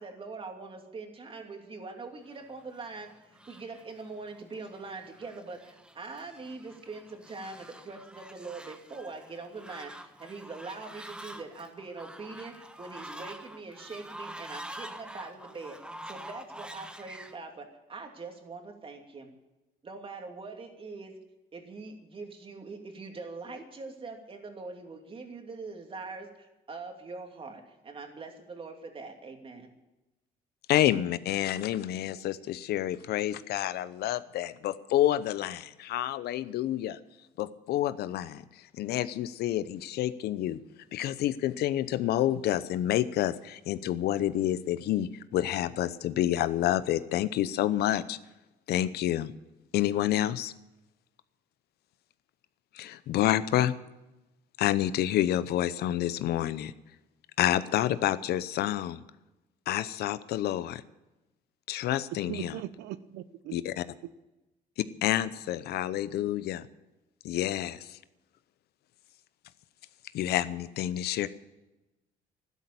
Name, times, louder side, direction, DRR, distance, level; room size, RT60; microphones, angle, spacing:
voice 1, 0.0-15.8 16.0-19.3 19.8-21.2 21.5-29.7, right 3 dB, 30° right, 4 dB, 2.7 m, -43 dB
Fowl, 2.5-17.4, right 1 dB, 5° right, 1.1 m, -47 dB
voice 2, 30.7-37.0 37.4-38.4 38.8-40.6 40.9-48.2 48.7-49.3 49.7-50.5 52.7-53.7 54.6-56.7 57.4-59.0 59.7-60.8 61.7-62.6 63.5-63.8 65.0-66.7 67.2-68.0 70.1-71.3, left 12 dB, 70° left, 15 dB, 0.8 m, -28 dB
voice 3, 62.3-63.6, right 13 dB, 85° right, 14 dB, 0.7 m, -39 dB
12.5 x 11.5 x 8.6 m, 1.0 s
cardioid pair, 110°, 17 cm